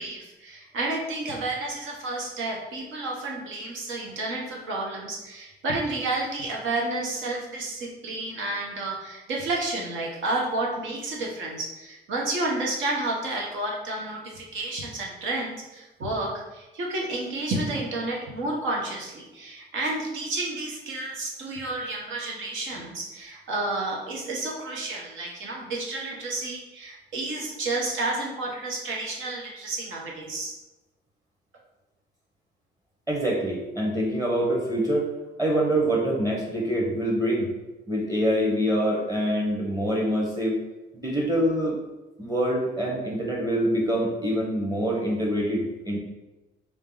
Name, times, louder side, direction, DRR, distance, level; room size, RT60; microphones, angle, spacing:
voice 1, 0.0-30.5, right 2 dB, 75° right, -2 dB, 1.1 m, -31 dB
voice 2, 33.1-35.1 35.4-37.5 37.9-40.6 40.9-41.8 42.2-46.0, equal, 20° right, -2 dB, 1.0 m, -25 dB
3.7 x 2.7 x 3.8 m, 1.1 s
cardioid pair, 90°, 20 cm